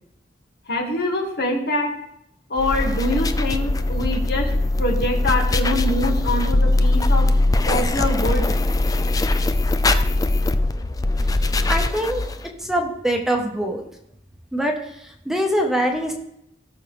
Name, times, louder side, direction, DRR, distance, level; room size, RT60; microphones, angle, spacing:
voice 1, 0.7-1.9 2.5-4.5 4.8-7.3 7.7-8.5, left 1 dB, 65° left, 1 dB, 2.2 m, -24 dB
sound 1, 2.6-12.5, left 2 dB, 20° left, 0.5 m, -21 dB
voice 2, 11.7-12.2 12.6-13.8 14.5-14.7 15.2-16.1, equal, 5° right, 2 dB, 1.2 m, -23 dB
17.5 x 6.4 x 3.4 m, 0.78 s
head